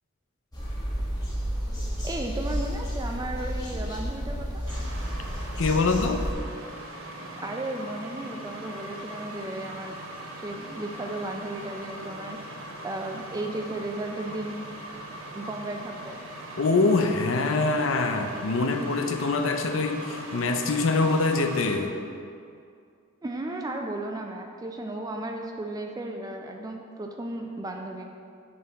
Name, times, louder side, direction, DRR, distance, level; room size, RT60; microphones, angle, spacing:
sound 1, 0.5-6.3, equal, 20° left, 1.1 m, -31 dB
voice 1, 2.0-4.6 7.4-10.0 10.4-12.4 12.8-14.7 15.1-16.2 23.2-28.1, right 2 dB, 20° right, 3 dB, 0.3 m, -34 dB
sound 2, 4.7-21.8, right 1 dB, 85° right, 0.9 m, -40 dB
voice 2, 5.6-6.3 16.6-21.9, left 3 dB, 70° left, 6 dB, 0.5 m, -24 dB
7.6 x 4.1 x 4.0 m, 2.3 s
head